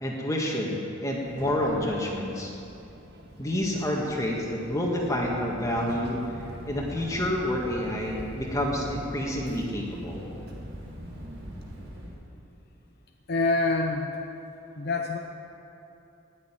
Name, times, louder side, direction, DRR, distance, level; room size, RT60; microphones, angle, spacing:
voice 1, 0.0-2.5 3.4-6.2 6.7-10.3, left 1 dB, 15° left, -2 dB, 1.8 m, -28 dB
Child speech kid speaking, 1.1-11.9, right 1 dB, 55° right, 1.8 m, -45 dB
sound 1, 4.6-12.1, equal, 80° right, 4.2 m, -43 dB
voice 2, 13.3-14.2 14.7-15.2, left 3 dB, 55° left, 2 dB, 0.8 m, -26 dB
18.5 x 6.7 x 9.9 m, 2.8 s
head